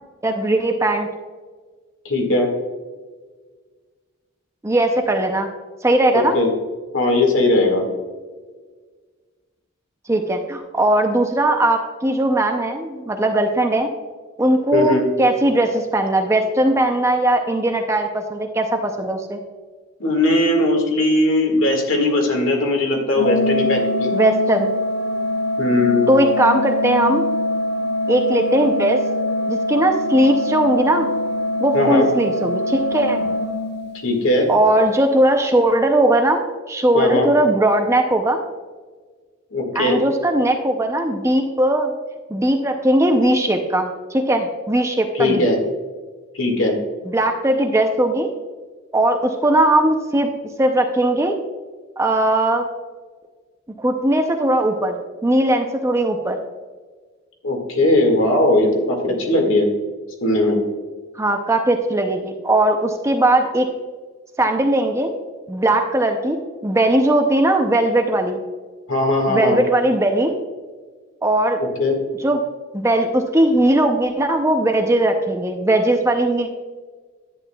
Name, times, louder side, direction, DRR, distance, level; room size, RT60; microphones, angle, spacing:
voice 1, 0.2-1.1 4.6-5.5 5.8-6.4 10.1-13.9 14.4-19.4 24.1-24.7 26.1-27.2 28.1-29.0 29.5-31.1 31.6-33.3 34.5-36.4 36.7-38.4 39.7-41.9 42.3-45.5 47.1-48.3 48.9-50.3 50.6-51.4 52.0-52.6 53.8-56.4 61.2-63.7 64.4-65.1 65.5-66.4 66.6-68.4 69.3-70.3 71.2-71.6 72.2-72.4 72.7-76.5, right 1 dB, 15° right, 4 dB, 0.5 m, -19 dB
voice 2, 2.1-2.5 6.1-6.5 6.9-7.8 14.7-15.1 20.0-24.1 25.6-26.0 31.7-32.1 34.0-34.5 36.9-37.3 39.5-40.0 45.1-45.6 46.3-46.7 57.4-59.7 60.2-60.6 68.9-69.6 71.6-72.0, left 2 dB, 65° left, 2 dB, 1.8 m, -18 dB
Organ, 23.2-34.2, left 1 dB, 50° left, 0.6 m, -23 dB
10.5 x 8.8 x 2.3 m, 1.5 s
head